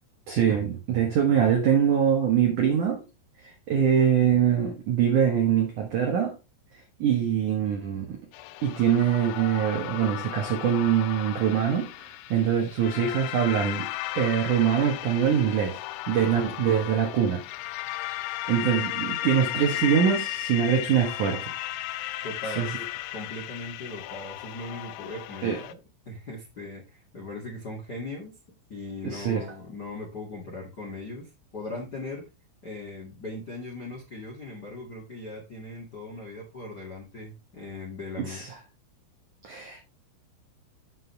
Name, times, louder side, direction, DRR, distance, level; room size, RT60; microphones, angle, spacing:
voice 1, 0.3-3.0 3.4-6.4 7.0-8.2 8.6-13.9 14.1-15.8 16.1-17.4 18.5-21.5 22.5-22.7 25.4-25.6 29.0-29.5 38.2-38.6 39.4-39.8, right 8 dB, 85° right, 1.7 m, -24 dB
sound 1, 8.3-25.7, left 16 dB, 90° left, 2.6 m, -35 dB
voice 2, 22.2-22.7 23.1-25.8 26.0-28.4 28.7-32.3 32.6-38.5, left 2 dB, 40° left, 1.4 m, -39 dB
7.8 x 7.5 x 3.3 m
omnidirectional pair, 5.9 m